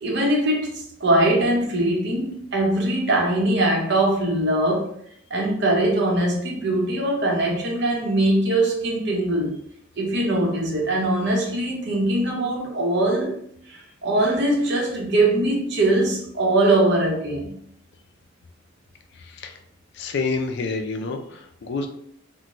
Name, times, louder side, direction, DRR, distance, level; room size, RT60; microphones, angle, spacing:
voice 1, 0.0-5.0 5.3-9.5 10.0-13.3 13.7-17.6, right 1 dB, 60° right, -1 dB, 0.8 m, -22 dB
voice 2, 19.2-19.6 19.9-21.9, left 4 dB, 60° left, 5 dB, 0.4 m, -28 dB
2.5 x 2.1 x 2.9 m, 0.66 s
head